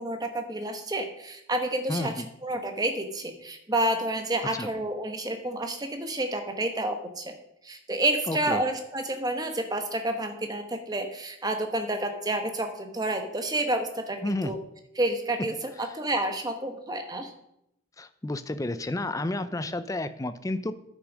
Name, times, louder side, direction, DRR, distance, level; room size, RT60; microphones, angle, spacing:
voice 1, 0.0-2.1 2.4-7.3 7.6-14.6 15.0-17.3, right 1 dB, 20° right, 5 dB, 1.1 m, -29 dB
voice 2, 1.9-2.3 4.4-4.7 8.3-8.6 14.2-14.5 15.8-15.9 18.0-20.7, left 2 dB, 15° left, 12 dB, 0.4 m, -31 dB
9.9 x 6.3 x 6.2 m, 0.80 s
head